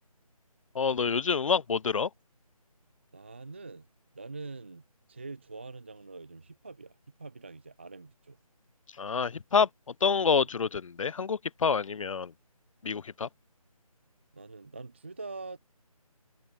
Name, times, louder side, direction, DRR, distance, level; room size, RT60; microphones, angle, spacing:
voice 1, 0.8-2.1 9.0-9.7 10.0-12.3 12.8-13.3, left 5 dB, 60° left, 0.4 m, -27 dB
voice 2, 3.1-3.9 4.1-8.4 10.4-10.5 14.3-15.6, right 3 dB, 20° right, 0.4 m, -44 dB
figure-of-eight pair, 160°, 19 cm